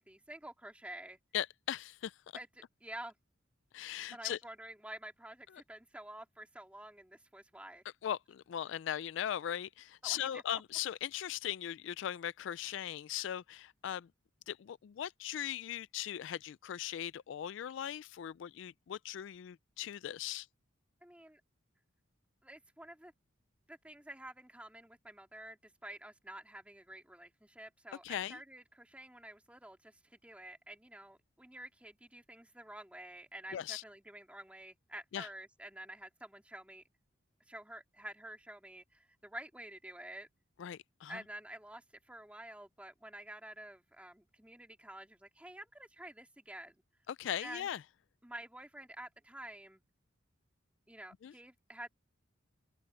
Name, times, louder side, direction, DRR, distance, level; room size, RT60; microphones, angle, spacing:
voice 1, 0.0-1.2 2.3-2.5 2.8-3.1 4.1-7.8 10.0-10.6 21.0-21.4 22.4-23.1 23.7-36.8 37.5-40.3 41.1-46.8 47.4-47.7 48.2-49.8 50.9-51.9, right 1 dB, 5° right, 2.3 m, -49 dB
voice 2, 1.3-2.4 3.7-4.4 8.0-14.1 14.5-20.5 28.0-28.4 33.5-33.8 35.1-35.3 40.6-41.2 47.1-47.8 51.2-51.3, left 10 dB, 65° left, 0.3 m, -39 dB
open air
head